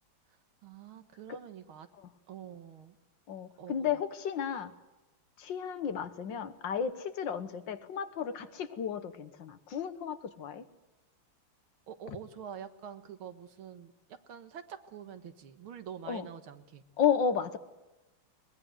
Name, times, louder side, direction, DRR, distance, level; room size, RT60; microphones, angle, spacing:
voice 1, 0.6-1.9 2.3-3.0 3.6-4.0 11.9-13.9 14.3-16.8, right 8 dB, 90° right, 9 dB, 2.2 m, -46 dB
voice 2, 3.3-4.7 5.4-10.6 12.1-12.2 16.1-16.3 17.0-17.6, left 7 dB, 65° left, 11 dB, 1.9 m, -33 dB
22.5 x 20.5 x 7.9 m, 1.0 s
omnidirectional pair, 2.2 m